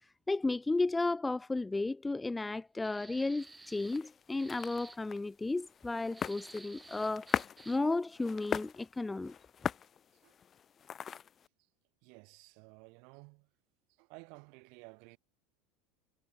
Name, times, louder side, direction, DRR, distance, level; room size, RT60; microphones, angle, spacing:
voice 1, 0.3-7.4 7.7-9.3, left 2 dB, 10° left, 0.4 m, -33 dB
sound 1, 2.8-4.1 4.4-5.0 6.1-7.9, right 3 dB, 10° right, 3.6 m, -53 dB
sound 2, 3.4-11.5, left 8 dB, 30° left, 1.5 m, -41 dB
voice 2, 12.0-13.5 14.0-15.2, right 34 dB, 65° right, 6.7 m, -54 dB
supercardioid pair, 115°, 0 cm